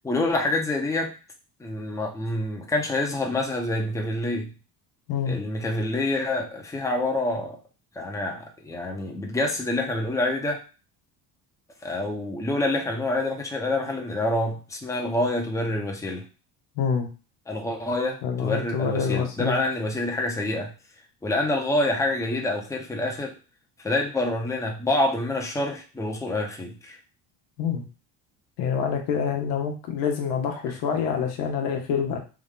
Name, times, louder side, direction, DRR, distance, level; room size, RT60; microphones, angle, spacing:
voice 1, 0.0-1.1 1.6-4.5 5.3-7.6 7.9-10.6 11.8-16.3 17.5-20.7 21.2-23.4 23.8-27.0, left 2 dB, 5° left, 1 dB, 0.8 m, -27 dB
voice 2, 16.8-17.1 18.2-19.6 27.6-27.8 28.6-32.2, left 6 dB, 85° left, 3 dB, 1.1 m, -26 dB
3.5 x 2.6 x 3.6 m, 0.33 s
supercardioid pair, 95°, 44 cm